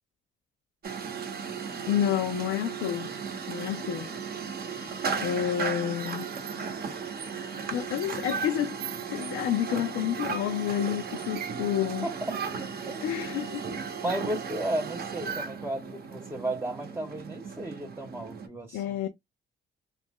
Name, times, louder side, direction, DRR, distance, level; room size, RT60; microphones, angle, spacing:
sound 1, 0.8-18.5, right 6 dB, 50° right, 0.7 m, -35 dB
voice 1, 1.9-3.1 3.5-4.1 4.6-4.9 5.2-6.3 7.7-8.8 9.1-12.1 13.0-13.6 18.7-19.1, left 10 dB, 80° left, 0.4 m, -29 dB
voice 2, 12.0-13.0 13.9-18.8, right 1 dB, 10° right, 0.5 m, -34 dB
2.4 x 2.1 x 3.4 m
cardioid pair, 90°, 20 cm